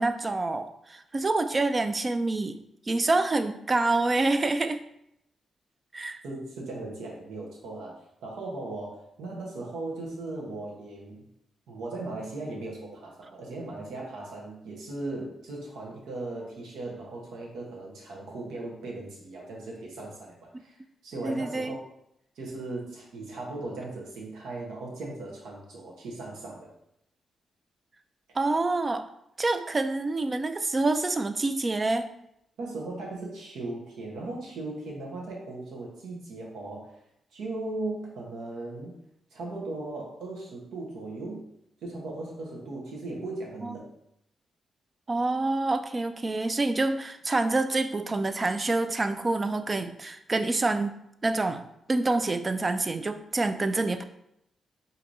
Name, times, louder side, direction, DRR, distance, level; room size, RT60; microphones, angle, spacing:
voice 1, 0.0-2.6 2.9-4.8 5.9-6.2 21.2-21.8 28.4-29.1 29.4-32.1 43.6-43.7 45.1-50.9 51.2-54.0, right 2 dB, 30° right, 9 dB, 0.3 m, -27 dB
voice 2, 6.2-11.2 11.7-21.8 22.4-26.7 32.6-37.0 37.3-39.0 39.3-41.4 41.8-43.9, right 2 dB, 90° right, -2 dB, 0.9 m, -38 dB
4.6 x 2.7 x 2.6 m, 0.79 s
cardioid pair, 80°, 0 cm